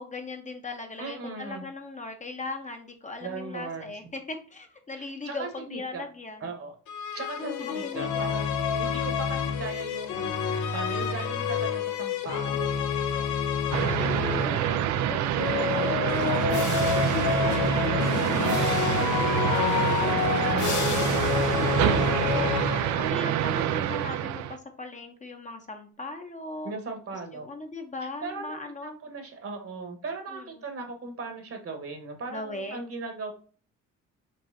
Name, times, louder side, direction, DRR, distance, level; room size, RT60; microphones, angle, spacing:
voice 1, 0.0-6.5 7.4-8.6 13.7-26.7 27.3-29.0 30.3-30.6 32.3-32.9, left 2 dB, 25° left, 5 dB, 0.7 m, -39 dB
voice 2, 1.0-1.6 3.2-3.9 4.9-6.1 6.4-6.7 7.1-12.9 15.3-15.9 18.4-19.1 26.6-27.5 28.2-28.6 28.8-33.3, right 3 dB, 50° right, 5 dB, 1.3 m, -38 dB
sound 1, 6.9-14.7 15.3-23.3, left 7 dB, 75° left, 0.7 m, -28 dB
sound 2, 13.7-24.6, right 11 dB, 70° right, 0.4 m, -26 dB
5.4 x 3.1 x 2.6 m, 0.42 s
cardioid pair, 90°, 30 cm